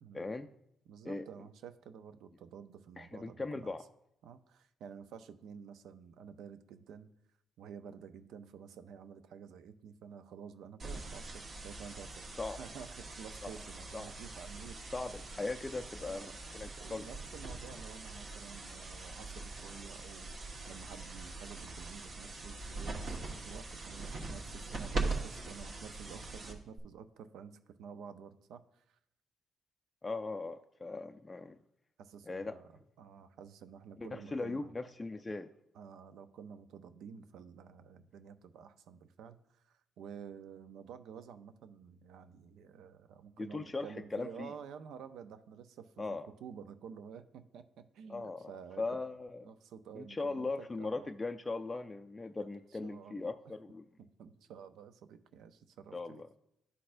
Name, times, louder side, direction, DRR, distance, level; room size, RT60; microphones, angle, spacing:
voice 1, 0.1-0.5 1.0-1.2 3.0-3.8 12.4-12.6 13.4-13.5 13.9-14.1 14.9-17.1 30.0-31.6 32.3-32.6 34.0-35.5 43.4-44.5 46.0-46.3 48.1-48.5 48.8-49.5 49.9-53.9 55.9-56.3, left 3 dB, 20° left, 6 dB, 0.3 m, -39 dB
voice 2, 0.9-3.7 4.2-7.1 7.6-12.2 12.6-14.8 16.0-16.3 16.8-29.0 32.0-32.7 33.0-34.7 35.7-48.8 49.4-50.5 50.8-51.1 52.8-53.3 54.0-56.2, right 7 dB, 80° right, 11 dB, 0.5 m, -51 dB
sound 1, 10.8-26.8, right 3 dB, 50° right, 1.2 m, -42 dB
11.0 x 4.1 x 2.5 m, 0.80 s
cardioid pair, 90°, 0 cm